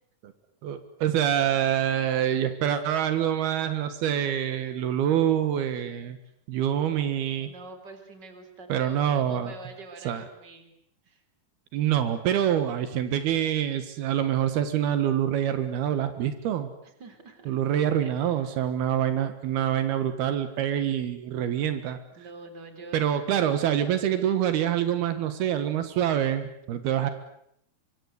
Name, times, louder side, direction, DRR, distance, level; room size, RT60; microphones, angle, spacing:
voice 1, 0.6-6.2 6.5-7.5 8.7-9.5 10.1-10.2 11.7-16.7 17.5-22.0 22.9-27.1, right 10 dB, 80° right, 10 dB, 3.5 m, -26 dB
voice 2, 7.5-10.7 11.1-11.2 16.8-18.5 22.2-23.0, right 3 dB, 30° right, 8 dB, 4.0 m, -46 dB
25.0 x 24.5 x 8.2 m, 0.72 s
omnidirectional pair, 4.4 m